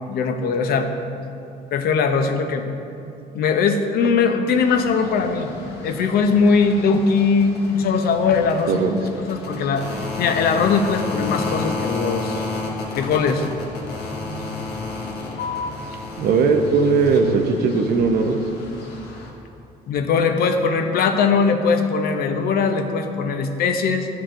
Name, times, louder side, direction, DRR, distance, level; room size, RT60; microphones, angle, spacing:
voice 1, 0.1-0.9 1.7-2.7 3.3-5.5 5.8-8.9 9.3-9.9 10.2-12.4 12.9-13.5 19.9-24.1, left 5 dB, 65° left, 6 dB, 0.6 m, -20 dB
sound 1, 4.5-19.3, left 3 dB, 80° left, 1.1 m, -32 dB
voice 2, 8.7-9.0 16.2-18.4, right 4 dB, 65° right, 5 dB, 0.5 m, -18 dB
11.0 x 4.6 x 2.5 m, 2.7 s
cardioid pair, 110°, 17 cm